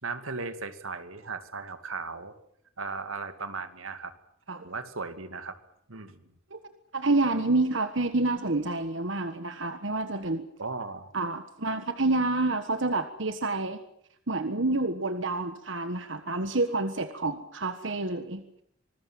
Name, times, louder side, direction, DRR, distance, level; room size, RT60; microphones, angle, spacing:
voice 1, 0.0-2.3 2.8-4.1 4.6-5.6 5.9-6.2 10.6-11.1, right 4 dB, 80° right, 10 dB, 2.4 m, -36 dB
voice 2, 6.9-10.5 11.1-13.8 14.3-18.4, right 2 dB, 60° right, 9 dB, 1.5 m, -28 dB
26.0 x 20.5 x 7.6 m, 0.71 s
head